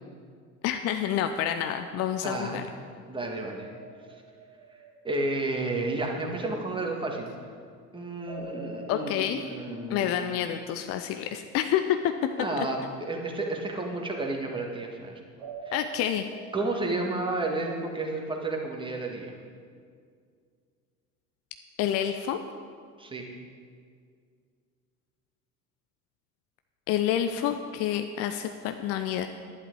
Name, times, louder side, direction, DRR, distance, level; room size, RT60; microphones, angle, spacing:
voice 1, 0.6-2.6 8.9-9.4 9.9-12.1 12.6-12.7 15.7-16.3 21.8-22.4 26.9-29.3, left 10 dB, 35° left, 7 dB, 0.6 m, -28 dB
voice 2, 2.2-2.6 3.1-3.7 5.0-7.3 7.9-10.1 12.3-15.2 15.7-15.8 16.5-19.3 23.0-23.3, right 2 dB, 10° right, 1 dB, 1.8 m, -31 dB
sound 1, 3.5-5.6 8.2-11.1 15.4-17.6, right 3 dB, 45° right, 2.2 m, -45 dB
11.5 x 11.0 x 4.7 m, 2.1 s
figure-of-eight pair, 70°, 44 cm